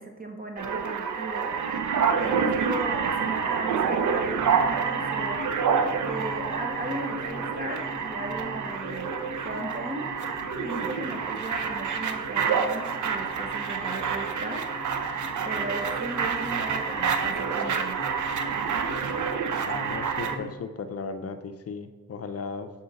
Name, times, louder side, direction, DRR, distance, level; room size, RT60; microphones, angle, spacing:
voice 1, 0.0-1.5 2.2-5.5 6.0-9.1 9.4-10.1 10.6-14.7 15.4-18.0, right 2 dB, 25° right, 3 dB, 0.9 m, -37 dB
sound 1, 0.6-20.4, right 6 dB, 60° right, 0.6 m, -28 dB
sound 2, 4.2-20.6, left 3 dB, 15° left, 1.5 m, -42 dB
voice 2, 19.6-22.7, left 5 dB, 45° left, 8 dB, 0.5 m, -36 dB
6.9 x 3.9 x 4.0 m, 1.2 s
cardioid pair, 80°, 34 cm